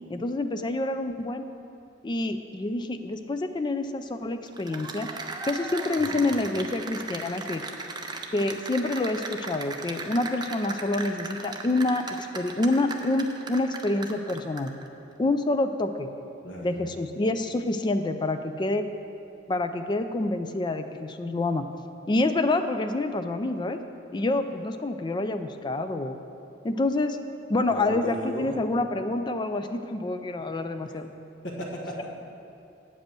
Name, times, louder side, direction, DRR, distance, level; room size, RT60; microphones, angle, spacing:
voice 1, 0.1-1.4 2.0-5.1 5.5-7.6 8.3-14.7 15.2-16.1 16.6-18.8 19.5-21.7 22.1-23.8 24.1-26.2 26.6-27.2 27.5-31.1, left 2 dB, 25° left, 8 dB, 0.4 m, -27 dB
Cheering / Applause, 4.5-14.8, right 3 dB, 25° right, 0.6 m, -37 dB
voice 2, 16.4-16.8 27.7-28.6 31.4-32.2, equal, 80° left, -3 dB, 1.3 m, -36 dB
8.1 x 5.2 x 7.5 m, 2.6 s
head